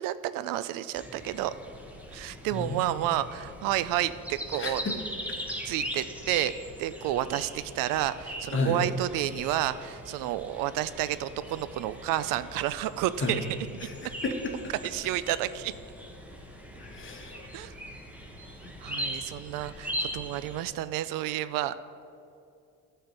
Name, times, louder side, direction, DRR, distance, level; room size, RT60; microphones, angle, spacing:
voice 1, 0.0-1.5 2.1-4.8 5.6-6.5 6.8-13.4 14.8-15.7 17.5-17.7 18.8-21.7, right 13 dB, 85° right, 15 dB, 0.5 m, -30 dB
sound 1, 0.9-20.6, equal, 5° right, 1.1 m, -40 dB
voice 2, 4.6-4.9 8.5-8.8 13.2-13.4 13.8-13.9 14.2-14.5 16.7-17.5, left 2 dB, 35° left, 3 dB, 1.4 m, -31 dB
11.5 x 4.5 x 6.5 m, 2.6 s
cardioid pair, 110°, 33 cm